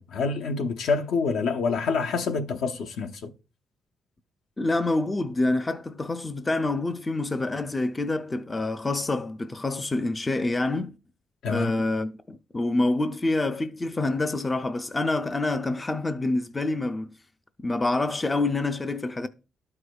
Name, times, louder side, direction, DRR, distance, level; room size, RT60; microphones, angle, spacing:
voice 1, 0.1-3.3 11.4-11.7, left 4 dB, 80° left, 0.8 m, -27 dB
voice 2, 4.6-11.0 11.5-17.1 17.6-19.3, left 2 dB, 15° left, 0.3 m, -27 dB
13.0 x 4.8 x 2.3 m
cardioid pair, 180°, 0 cm